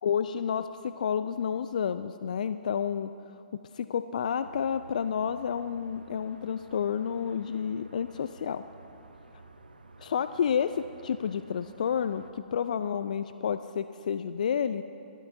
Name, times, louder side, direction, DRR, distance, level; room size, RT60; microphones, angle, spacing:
voice 1, 0.0-3.1 3.7-8.6 10.0-14.8, left 7 dB, 60° left, 12 dB, 0.4 m, -30 dB
sound 1, 4.4-12.3, right 3 dB, 85° right, 0.9 m, -52 dB
26.0 x 13.0 x 2.7 m, 2.6 s
figure-of-eight pair, 120°, 5 cm